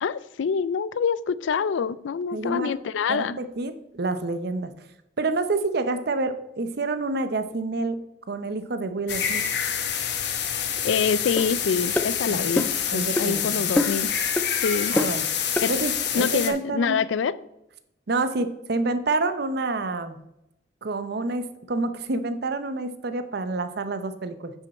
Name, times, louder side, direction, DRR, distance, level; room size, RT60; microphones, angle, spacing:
voice 1, 0.0-3.4 10.8-14.2 14.6-15.0 15.6-15.7 16.1-17.4, left 6 dB, 75° left, 0.4 m, -26 dB
voice 2, 2.3-2.7 3.1-4.7 5.2-8.0 8.3-9.5 12.3-12.5 12.9-13.7 14.9-15.2 15.7-17.0 18.1-20.2 20.8-24.5, right 3 dB, 60° right, 0.7 m, -28 dB
sound 1, 9.1-16.5, left 8 dB, 60° left, 1.0 m, -27 dB
sound 2, 11.4-11.5 12.0-12.1 12.6-12.8 13.2-13.3 13.8-14.1 14.4-14.5 15.0-15.2 15.6-15.7, left 1 dB, 10° left, 0.4 m, -25 dB
9.7 x 5.4 x 4.2 m
head